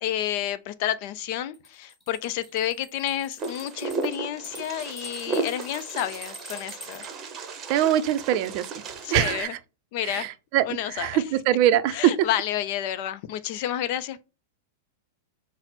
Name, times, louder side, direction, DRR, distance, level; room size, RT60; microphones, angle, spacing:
voice 1, 0.0-7.0 9.0-9.5 9.9-10.3 10.6-11.2 11.9-14.2, left 11 dB, 50° left, 0.4 m, -30 dB
sound 1, 1.5-7.1, left 1 dB, 5° left, 1.7 m, -44 dB
Wind, 3.4-9.4, right 4 dB, 25° right, 0.8 m, -34 dB
voice 2, 7.7-8.6 9.1-9.6 10.0-12.3, right 12 dB, 45° right, 0.4 m, -23 dB
5.7 x 2.0 x 4.1 m
hypercardioid pair, 140°, 0 cm